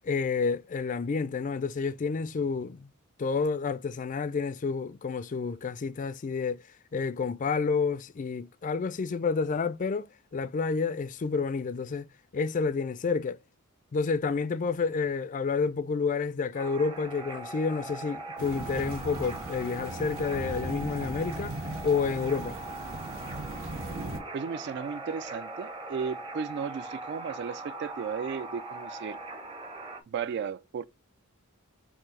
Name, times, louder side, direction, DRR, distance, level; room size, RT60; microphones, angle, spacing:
voice 1, 0.0-2.9 3.2-6.6 6.9-12.1 12.3-13.4 13.9-22.6, left 5 dB, 35° left, 0.3 m, -29 dB
sound 1, 16.5-30.0, right 2 dB, 25° right, 0.8 m, -41 dB
sound 2, 18.4-24.2, right 1 dB, 75° right, 1.5 m, -38 dB
voice 2, 24.3-29.2 30.1-30.8, right 6 dB, 50° right, 0.3 m, -35 dB
5.7 x 2.7 x 3.2 m
head